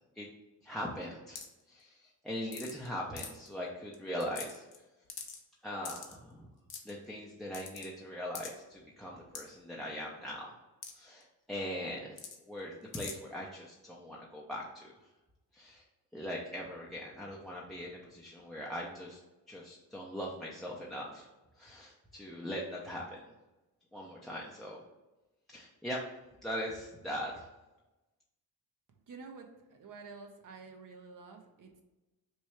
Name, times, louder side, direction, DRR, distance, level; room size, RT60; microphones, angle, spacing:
voice 1, 0.6-1.4 1.7-4.7 5.6-6.5 6.8-10.5 10.9-12.2 12.5-14.9 15.5-15.8 16.1-19.2 19.5-21.3 21.6-23.2 23.9-24.8 25.5-26.1 26.4-27.5, equal, ahead, -3 dB, 0.5 m, -40 dB
sound 1, 1.4-1.6 2.5-2.9 3.2-3.5 3.9-4.0 4.2-4.8 5.1-5.4 5.8-6.2 6.7-6.9 7.5-7.9 8.3-8.5 9.3-9.4 10.8-10.9 11.2-11.3 12.2-12.4 12.9-13.1, left 6 dB, 70° left, 0.8 m, -43 dB
voice 2, 29.1-31.8, right 4 dB, 50° right, 4 dB, 0.7 m, -50 dB
3.1 x 2.3 x 4.3 m, 1.0 s
cardioid pair, 70°, 40 cm